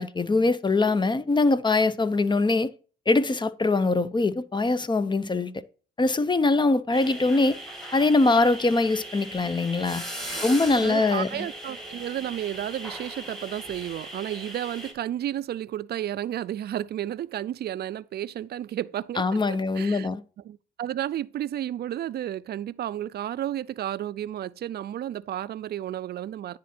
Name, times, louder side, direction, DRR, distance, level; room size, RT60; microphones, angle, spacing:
voice 1, 0.0-2.7 3.1-5.6 6.0-7.6 7.9-10.0 10.4-11.5 19.2-20.2, left 3 dB, 25° left, 0.5 m, -23 dB
sound 1, 6.9-14.9, right 1 dB, ahead, 1.9 m, -38 dB
voice 2, 10.3-19.2 19.8-20.1 20.4-26.6, right 12 dB, 55° right, 0.4 m, -32 dB
9.9 x 3.7 x 4.2 m
supercardioid pair, 65°, 20 cm